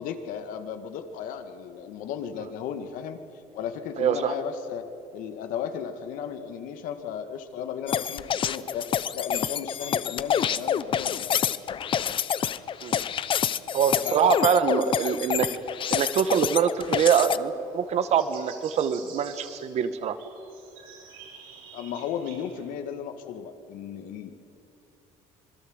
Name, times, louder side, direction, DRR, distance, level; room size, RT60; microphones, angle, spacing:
voice 1, 0.0-3.2 3.5-4.8 5.1-11.4 14.0-14.3 15.5-15.6 21.7-24.4, left 8 dB, 75° left, 8 dB, 2.0 m, -35 dB
voice 2, 4.0-4.3 12.8-13.0 13.7-15.5 15.9-20.2, right 7 dB, 50° right, 11 dB, 1.5 m, -24 dB
sound 1, 7.9-17.4, left 8 dB, 40° left, 0.7 m, -27 dB
sound 2, 16.1-22.6, right 6 dB, 90° right, 6.7 m, -50 dB
26.0 x 20.5 x 8.0 m, 2.7 s
cardioid pair, 130°, 14 cm